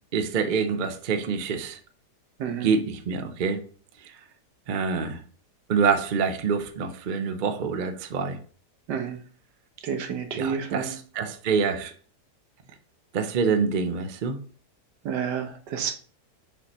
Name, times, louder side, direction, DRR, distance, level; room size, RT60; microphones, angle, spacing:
voice 1, 0.1-1.8 2.6-3.7 4.0-4.1 4.7-5.2 5.7-8.4 10.3-11.9 13.1-14.4, right 5 dB, 65° right, 0.4 m, -26 dB
voice 2, 9.8-10.9 15.0-15.9, right 7 dB, 80° right, 1.5 m, -30 dB
6.5 x 5.2 x 3.0 m
omnidirectional pair, 1.8 m